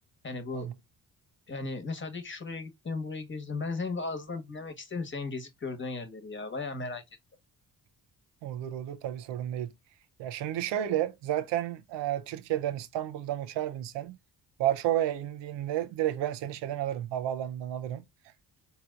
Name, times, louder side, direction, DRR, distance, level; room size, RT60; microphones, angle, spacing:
voice 1, 0.2-0.7 1.5-7.0, left 3 dB, 30° left, 1.2 m, -36 dB
voice 2, 8.4-9.7 10.2-14.2 14.6-18.0, right 12 dB, 85° right, 0.6 m, -31 dB
4.3 x 2.8 x 2.4 m
supercardioid pair, 60°, 42 cm